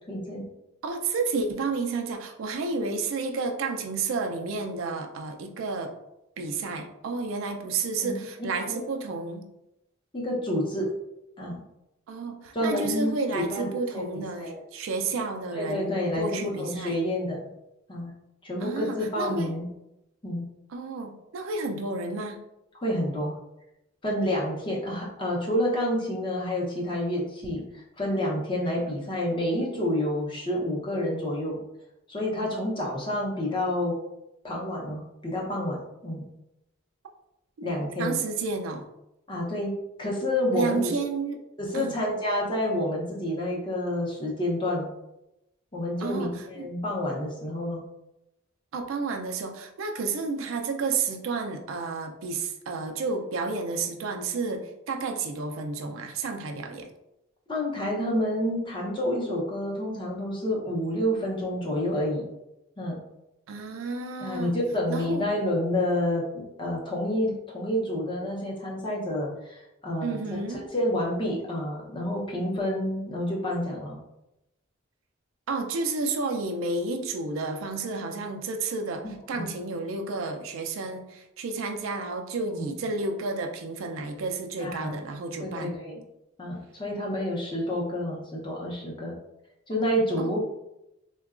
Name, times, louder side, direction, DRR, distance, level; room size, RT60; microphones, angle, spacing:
voice 1, 0.1-0.4 8.0-8.2 8.7-8.8 10.1-10.9 11.4-11.6 12.5-14.5 15.5-17.4 17.9-18.1 18.4-19.7 20.2-20.4 22.7-23.3 24.0-31.6 32.1-34.0 34.4-35.8 36.0-36.2 37.6-38.2 39.3-40.9 41.6-44.9 45.7-47.8 57.5-62.2 62.8-62.9 64.2-66.2 66.6-70.2 70.5-74.0 79.0-79.5 82.4-82.7 84.6-85.0 85.4-86.0 86.4-89.1 89.7-90.4, left 1 dB, 25° left, -3 dB, 0.7 m, -29 dB
voice 2, 0.8-5.9 6.4-9.5 12.1-16.9 18.6-19.5 20.7-22.4 37.6-37.7 38.0-38.9 40.5-41.4 41.7-41.9 46.0-46.7 48.7-56.9 63.5-64.5 64.9-65.2 70.0-70.7 75.5-85.7 90.2-90.3, right 3 dB, 80° right, 4 dB, 0.4 m, -31 dB
3.7 x 2.2 x 2.4 m, 0.88 s
head